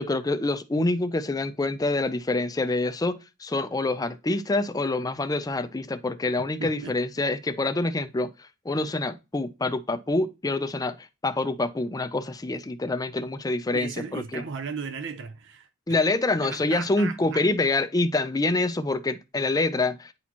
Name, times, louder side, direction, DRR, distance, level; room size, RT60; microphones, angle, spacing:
voice 1, 0.0-14.4 15.9-20.1, left 2 dB, 15° left, 0.5 m, -26 dB
voice 2, 6.6-7.0 7.6-7.7 13.7-16.0 16.4-17.4, right 5 dB, 55° right, 0.7 m, -36 dB
9.5 x 4.2 x 2.9 m
head